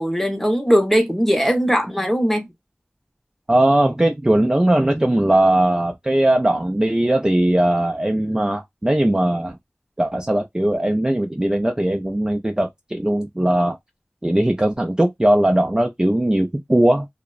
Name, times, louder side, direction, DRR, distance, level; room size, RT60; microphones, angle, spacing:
voice 1, 0.0-2.4, equal, 5° left, 0.7 m, -19 dB
voice 2, 3.5-9.6 10.0-13.8 14.2-17.1, right 1 dB, 20° right, 0.4 m, -19 dB
2.9 x 2.0 x 2.3 m
wide cardioid pair, 60°, 4 cm